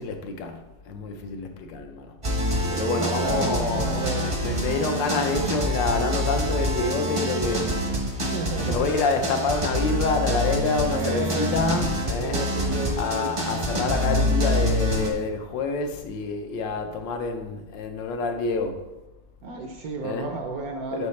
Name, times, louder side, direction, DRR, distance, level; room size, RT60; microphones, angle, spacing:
voice 1, 0.0-8.3 8.6-12.4 13.0-18.8 20.0-20.3 20.9-21.1, left 4 dB, 80° left, 5 dB, 1.4 m, -28 dB
sound 1, 2.2-15.1, equal, 30° right, 0.6 m, -26 dB
voice 2, 2.9-4.3 8.2-9.0 10.9-11.7 12.0-13.3 19.4-21.1, right 3 dB, 70° right, 3 dB, 0.9 m, -32 dB
8.2 x 4.7 x 3.2 m, 1.1 s
omnidirectional pair, 2.0 m